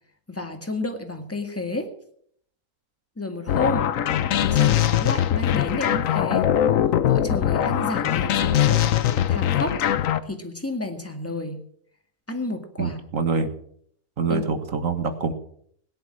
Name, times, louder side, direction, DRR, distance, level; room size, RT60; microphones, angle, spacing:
voice 1, 0.3-1.9 3.2-3.9 4.3-6.5 7.1-8.9 9.3-9.8 10.3-11.6 12.3-13.0 14.3-14.4, left 2 dB, 10° left, 5 dB, 1.8 m, -30 dB
sound 1, 3.5-10.2, left 10 dB, 65° left, 1.1 m, -21 dB
voice 2, 12.8-13.5 14.2-15.3, right 4 dB, 55° right, 9 dB, 1.9 m, -25 dB
17.0 x 11.0 x 6.2 m, 0.64 s
omnidirectional pair, 1.6 m